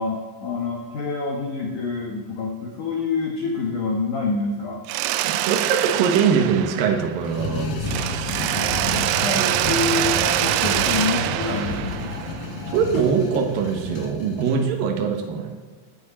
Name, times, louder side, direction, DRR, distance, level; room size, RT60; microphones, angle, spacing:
voice 1, 0.0-4.8 8.9-12.1, left 4 dB, 85° left, -1 dB, 1.7 m, -27 dB
Mechanisms, 4.9-7.5 7.8-12.7, right 14 dB, 85° right, 2.6 m, -25 dB
voice 2, 5.2-8.1 12.7-15.5, right 6 dB, 65° right, 3 dB, 2.4 m, -22 dB
sound 1, 7.2-14.6, left 3 dB, 65° left, 2.2 m, -31 dB
sound 2, 7.8-9.3 10.0-12.3 12.6-13.6, left 3 dB, 45° left, 5.1 m, -38 dB
18.0 x 9.5 x 4.3 m, 1.4 s
omnidirectional pair, 5.9 m